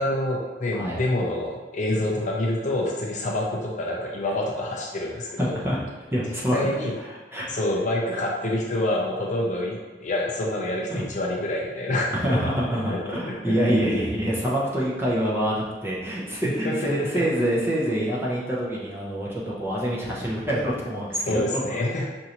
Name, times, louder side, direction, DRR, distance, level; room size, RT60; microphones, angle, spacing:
voice 1, 0.0-5.6 6.5-6.9 7.5-12.4 12.9-13.0 13.3-13.9 16.6-17.2 21.2-22.1, left 1 dB, 45° left, -1 dB, 0.5 m, -27 dB
voice 2, 5.4-5.8 6.1-6.6 7.3-7.6 10.9-11.0 12.2-21.8, equal, 15° right, -6 dB, 0.7 m, -26 dB
4.6 x 2.6 x 2.9 m, 1.3 s
head